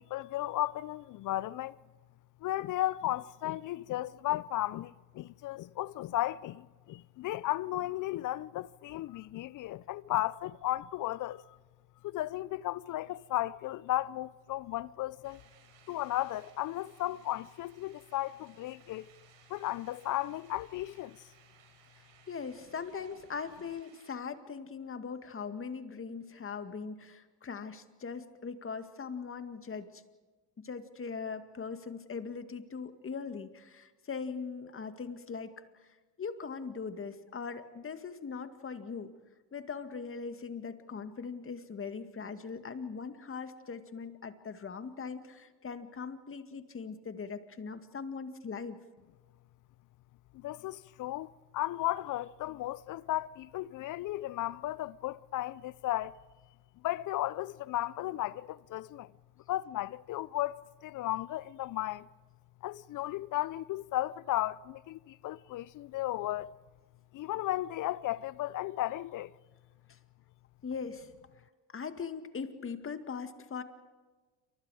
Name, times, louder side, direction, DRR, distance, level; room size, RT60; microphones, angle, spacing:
voice 1, 0.0-1.8 2.4-11.6 12.0-15.4 15.9-19.1 19.5-21.2 50.3-56.2 56.8-59.1 59.5-62.1 62.6-66.5 67.1-69.3, left 15 dB, 40° left, 0.6 m, -35 dB
sound 1, 15.2-24.2, right 8 dB, 65° right, 5.8 m, -62 dB
voice 2, 22.3-30.0 30.6-35.5 36.2-39.1 39.5-48.8 70.6-71.1 71.7-73.6, left 5 dB, 25° left, 2.0 m, -40 dB
28.5 x 25.0 x 4.9 m
hypercardioid pair, 80°, 49 cm